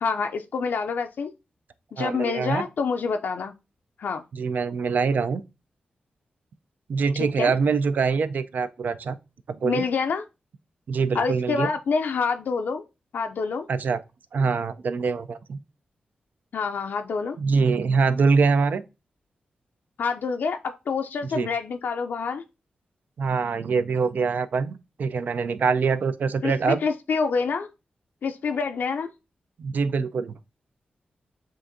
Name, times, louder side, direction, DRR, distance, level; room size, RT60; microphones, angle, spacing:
voice 1, 0.0-1.3 1.9-3.5 4.0-4.2 7.2-7.5 9.6-10.2 11.1-12.8 13.1-13.7 16.5-17.4 20.0-22.4 26.4-27.7 28.2-29.1, left 5 dB, 75° left, 0.4 m, -27 dB
voice 2, 2.0-2.6 4.3-5.4 6.9-9.2 9.5-9.8 10.9-11.7 13.7-14.0 14.3-15.6 17.4-18.8 21.3-21.5 23.2-26.8 29.6-30.3, right 5 dB, 65° right, 0.4 m, -24 dB
7.4 x 2.5 x 2.6 m
cardioid pair, 80°, 3 cm